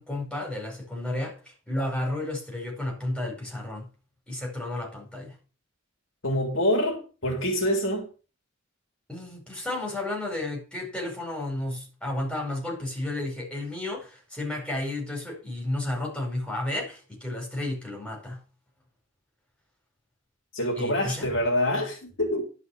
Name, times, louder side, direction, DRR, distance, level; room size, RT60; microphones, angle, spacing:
voice 1, 0.0-1.4 1.7-3.9 4.3-5.4 9.1-18.4 20.8-21.3, left 1 dB, 5° left, 4.8 m, -32 dB
voice 2, 6.2-8.1 20.5-22.4, equal, 70° left, 3.4 m, -26 dB
11.5 x 5.6 x 6.4 m
head